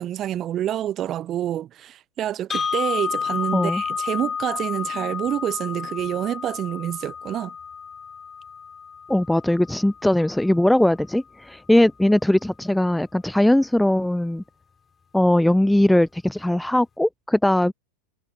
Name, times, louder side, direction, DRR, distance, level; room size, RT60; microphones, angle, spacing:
voice 1, 0.0-7.5, right 11 dB, 30° right, 1.1 m, -27 dB
sound 1, 2.5-10.5, left 6 dB, 20° left, 4.4 m, -31 dB
voice 2, 9.1-14.4 15.1-17.7, left 1 dB, 5° left, 0.4 m, -20 dB
figure-of-eight pair, 90°, 0 cm